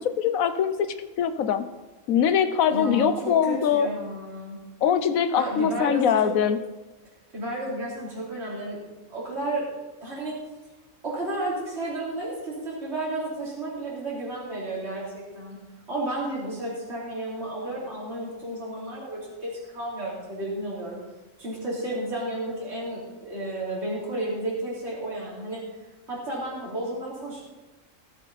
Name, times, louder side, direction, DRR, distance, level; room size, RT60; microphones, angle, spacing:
voice 1, 0.0-1.7 2.1-3.9 4.8-6.6, left 8 dB, 80° left, 10 dB, 1.2 m, -23 dB
voice 2, 2.7-4.6 5.4-6.1 7.3-8.8 9.1-9.7 10.0-10.4 11.0-15.6 15.9-21.0 21.4-25.6 26.1-27.4, right 1 dB, 50° right, -7 dB, 3.6 m, -32 dB
18.0 x 7.4 x 4.1 m, 1.1 s
omnidirectional pair, 1.4 m